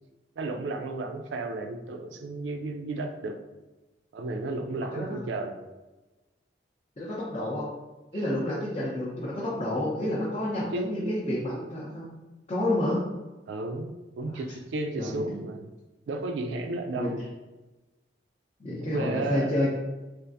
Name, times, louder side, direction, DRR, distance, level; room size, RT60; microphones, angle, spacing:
voice 1, 0.4-3.4 4.1-5.6 10.7-11.1 13.5-15.7 16.1-17.2 18.8-19.6, right 2 dB, 75° right, 6 dB, 0.3 m, -33 dB
voice 2, 7.0-7.7 8.1-12.1 12.5-13.0 14.3-14.4 15.0-15.2 17.0-17.1 18.6-19.8, left 1 dB, 30° left, -7 dB, 0.5 m, -29 dB
3.3 x 2.4 x 2.6 m, 1.1 s
head